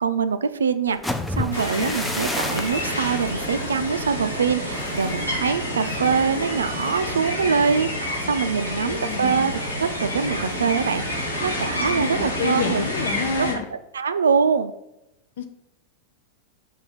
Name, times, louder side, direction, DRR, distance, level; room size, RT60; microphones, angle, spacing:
voice 1, 0.0-12.8 13.4-13.5 13.9-14.7, right 6 dB, 70° right, 12 dB, 0.4 m, -24 dB
sound 1, 0.9-8.7 9.1-9.4 9.8-10.2, left 2 dB, 5° left, 0.4 m, -34 dB
sound 2, 1.5-13.5, equal, 85° left, 1.5 m, -28 dB
voice 2, 8.8-9.5 11.9-13.6 15.4-15.5, left 6 dB, 60° left, 7 dB, 0.7 m, -29 dB
5.5 x 3.4 x 5.3 m, 0.88 s
figure-of-eight pair, 90°, 0 cm